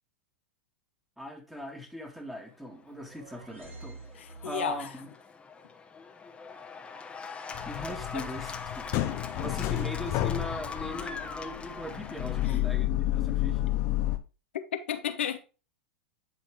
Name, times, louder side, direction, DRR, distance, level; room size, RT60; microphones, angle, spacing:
voice 1, 1.2-4.0 4.4-5.1 7.7-8.9 9.4-13.6, equal, 5° right, 1.9 m, -40 dB
sound 1, 2.7-5.0, right 3 dB, 90° right, 2.3 m, -49 dB
Cheering / Applause, 2.8-12.5, left 5 dB, 15° left, 1.1 m, -42 dB
voice 2, 4.1-4.9 8.1-8.3 12.4-12.6 14.7-15.4, left 9 dB, 80° left, 1.0 m, -33 dB
sound 2, 7.5-14.2, left 15 dB, 45° left, 0.9 m, -31 dB
10.5 x 4.2 x 3.6 m
hypercardioid pair, 100°, 6 cm